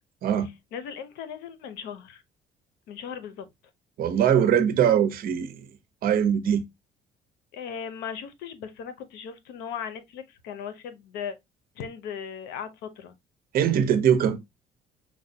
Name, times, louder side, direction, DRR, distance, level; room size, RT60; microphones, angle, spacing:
voice 1, 0.4-2.2 2.9-3.5 7.5-11.4 11.8-13.2, left 7 dB, 90° left, 0.7 m, -37 dB
voice 2, 4.0-5.6 6.0-6.6 13.5-14.4, right 9 dB, 60° right, 0.7 m, -22 dB
4.6 x 2.2 x 2.7 m
cardioid pair, 110°, 17 cm